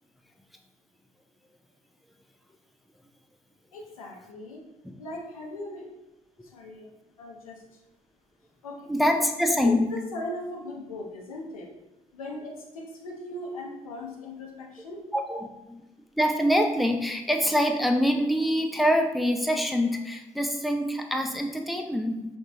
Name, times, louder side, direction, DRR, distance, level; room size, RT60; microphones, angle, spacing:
voice 1, 3.7-4.6 5.0-5.9 6.5-6.9 7.2-7.6 8.6-8.8 9.5-11.7 12.1-15.0, left 1 dB, 90° left, -1 dB, 0.6 m, -38 dB
voice 2, 8.9-9.9 15.1-15.8 16.2-22.3, equal, ahead, 4 dB, 0.5 m, -25 dB
5.4 x 2.6 x 2.8 m, 0.94 s
figure-of-eight pair, 45°, 18 cm